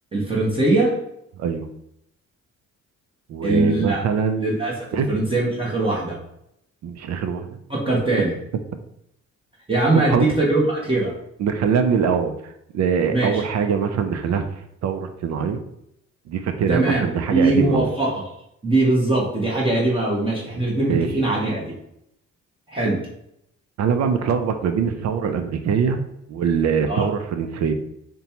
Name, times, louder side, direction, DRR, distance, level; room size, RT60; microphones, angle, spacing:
voice 1, 0.1-1.0 3.4-4.0 4.4-6.2 7.7-8.3 9.7-11.1 13.1-13.4 16.7-18.2 18.6-21.8 22.7-23.1 26.9-27.1, right 2 dB, 20° right, -5 dB, 1.0 m, -21 dB
voice 2, 3.3-4.5 4.9-5.1 6.8-7.6 10.1-10.3 11.4-14.4 14.8-15.6 16.3-17.9 20.5-21.1 23.8-27.7, right 6 dB, 60° right, 7 dB, 0.5 m, -23 dB
5.1 x 2.2 x 2.9 m, 0.77 s
cardioid pair, 90°, 30 cm